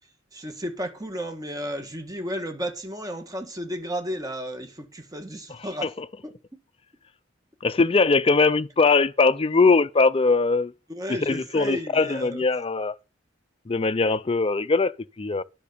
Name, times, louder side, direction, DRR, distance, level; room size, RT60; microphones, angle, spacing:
voice 1, 0.3-5.9 6.2-6.3 10.9-12.4, equal, 20° right, 1.6 m, -33 dB
voice 2, 5.5-6.1 7.6-10.7 11.2-13.0 13.7-15.4, left 4 dB, 30° left, 0.5 m, -21 dB
10.5 x 6.0 x 6.8 m
head